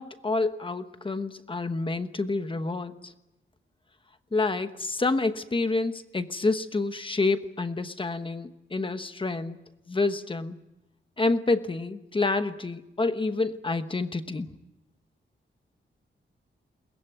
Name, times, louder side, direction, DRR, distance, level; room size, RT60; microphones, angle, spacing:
voice 1, 0.0-3.1 4.3-9.6 9.9-10.6 11.2-14.5, left 3 dB, 25° left, 10 dB, 1.1 m, -28 dB
22.0 x 20.0 x 9.4 m, 0.94 s
wide cardioid pair, 145°, 20 cm